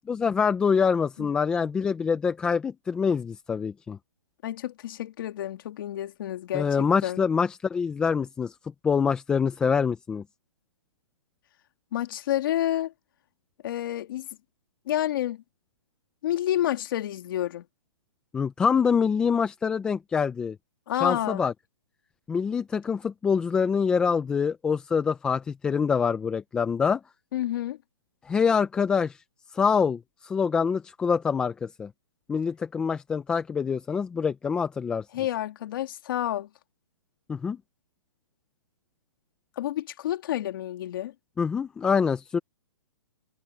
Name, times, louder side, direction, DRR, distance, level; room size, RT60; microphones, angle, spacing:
voice 1, 0.1-4.0 6.5-8.5 8.8-10.2 18.3-20.6 21.0-21.5 22.3-27.0 28.3-29.2 29.5-31.9 32.3-35.1 37.3-37.6 41.4-42.4, left 6 dB, 5° left, 0.5 m, -25 dB
voice 2, 4.4-7.2 11.9-12.9 13.6-14.3 14.9-15.4 16.2-17.6 20.9-21.4 27.3-27.8 35.1-36.5 39.6-41.1, left 12 dB, 45° left, 2.5 m, -29 dB
hypercardioid pair, 160°, 16 cm